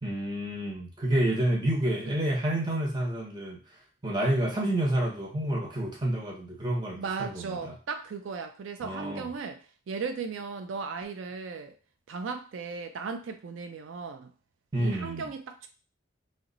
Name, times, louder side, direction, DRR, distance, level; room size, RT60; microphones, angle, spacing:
voice 1, 0.0-3.6 4.0-7.7 8.8-9.3 14.7-15.3, right 1 dB, 20° right, -2 dB, 0.7 m, -29 dB
voice 2, 7.0-11.8 12.1-14.3 14.8-15.7, right 5 dB, 85° right, 7 dB, 0.4 m, -36 dB
2.9 x 2.1 x 3.8 m, 0.36 s
head